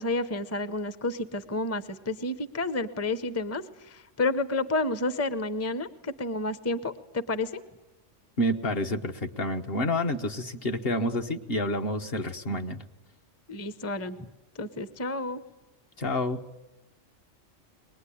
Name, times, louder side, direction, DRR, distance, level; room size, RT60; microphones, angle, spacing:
voice 1, 0.0-7.6 13.5-14.2 14.5-15.4, left 2 dB, 15° left, 12 dB, 0.6 m, -30 dB
voice 2, 8.4-12.8 16.0-16.4, left 1 dB, 50° left, 5 dB, 1.2 m, -29 dB
23.0 x 19.5 x 10.0 m, 0.98 s
omnidirectional pair, 1.3 m